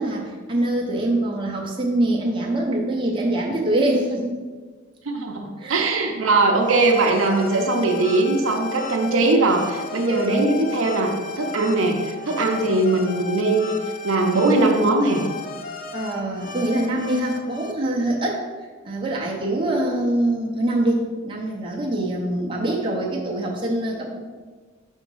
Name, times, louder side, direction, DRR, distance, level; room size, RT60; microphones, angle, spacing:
voice 1, 0.0-4.4 5.6-5.9 15.9-18.4 18.8-24.2, right 1 dB, 20° right, -3 dB, 0.7 m, -24 dB
voice 2, 5.1-13.8 14.0-15.2, right 2 dB, 65° right, 2 dB, 0.7 m, -20 dB
sound 1, 6.6-17.7, left 5 dB, 35° left, 0.4 m, -35 dB
5.0 x 3.6 x 5.4 m, 1.5 s
head